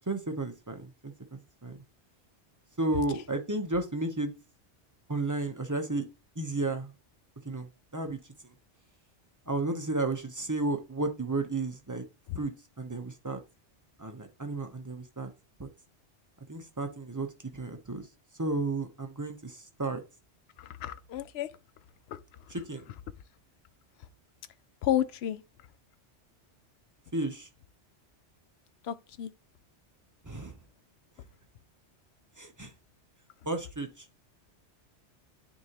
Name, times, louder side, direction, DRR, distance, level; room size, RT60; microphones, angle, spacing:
voice 1, 0.1-1.1 1.6-1.8 2.8-4.3 5.1-6.0 6.4-6.9 7.4-7.7 7.9-8.2 9.5-12.0 12.3-12.5 12.8-13.4 14.0-15.3 15.6-15.7 16.5-17.3 17.5-18.1 18.4-20.0 22.5-22.8 27.1-27.5 30.3-30.5 32.4-32.7 33.4-33.9, right 2 dB, 20° right, 0.7 m, -32 dB
voice 2, 20.8-21.5 24.8-25.4 28.9-29.3, left 11 dB, 65° left, 0.8 m, -30 dB
9.5 x 3.6 x 2.9 m
omnidirectional pair, 1.2 m